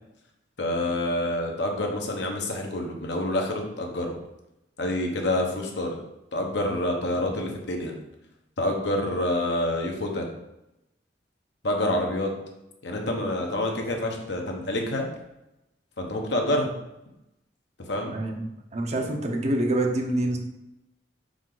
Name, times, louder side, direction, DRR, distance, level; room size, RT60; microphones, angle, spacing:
voice 1, 0.6-4.1 4.8-6.0 6.3-7.9 8.6-10.3 11.6-12.3 12.8-15.0 16.0-16.7 17.8-18.1, left 1 dB, 65° left, 2 dB, 1.1 m, -27 dB
voice 2, 18.0-18.3 18.7-20.4, right 1 dB, 35° right, 2 dB, 0.8 m, -26 dB
5.0 x 4.9 x 3.9 m, 0.90 s
head